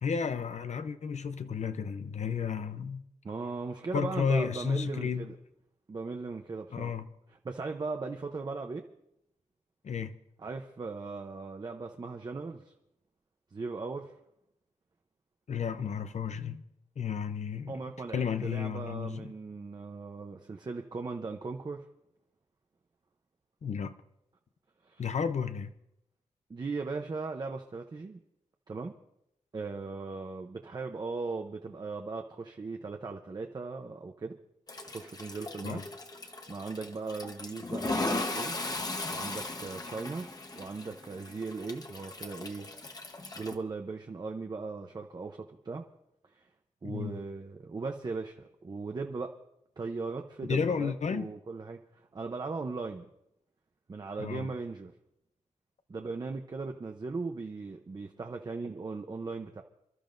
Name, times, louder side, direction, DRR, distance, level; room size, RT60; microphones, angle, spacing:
voice 1, 0.0-3.0 3.9-5.3 6.7-7.1 9.8-10.1 15.5-16.6 17.0-17.7 18.1-19.3 23.6-23.9 25.0-25.7 35.6-35.8 46.8-47.1 50.5-51.3 54.2-54.5, left 6 dB, 65° left, 0.7 m, -32 dB
voice 2, 3.2-5.4 5.9-6.9 7.4-8.9 10.4-12.7 13.5-14.1 17.7-21.8 24.8-25.1 26.5-28.2 28.7-28.9 29.5-34.4 34.9-35.8 36.2-38.6 39.1-40.3 40.5-42.7 43.4-45.8 46.3-46.5 46.8-49.3 49.8-53.1 53.9-54.9 55.9-59.6, right 4 dB, 35° right, 0.7 m, -38 dB
Toilet flush, 34.7-43.5, left 2 dB, 30° left, 1.1 m, -37 dB
28.5 x 12.5 x 2.6 m
wide cardioid pair, 160°, 13 cm